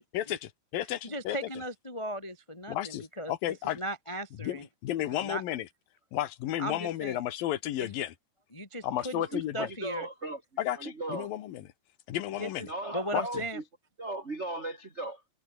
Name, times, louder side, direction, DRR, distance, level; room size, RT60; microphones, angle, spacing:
voice 1, 0.1-1.4 2.7-3.8 4.4-5.7 6.1-8.1 8.8-9.7 10.6-11.7 12.1-12.7 13.1-13.4, left 13 dB, 65° left, 3.0 m, -33 dB
voice 2, 1.0-3.3 3.8-4.7 5.2-5.4 6.6-7.2 7.8-7.9 8.5-10.1 12.4-13.6, right 1 dB, 15° left, 1.3 m, -37 dB
voice 3, 8.9-10.4 10.7-11.3 12.7-13.6 14.0-15.2, right 2 dB, 30° right, 1.3 m, -37 dB
omnidirectional pair, 4.8 m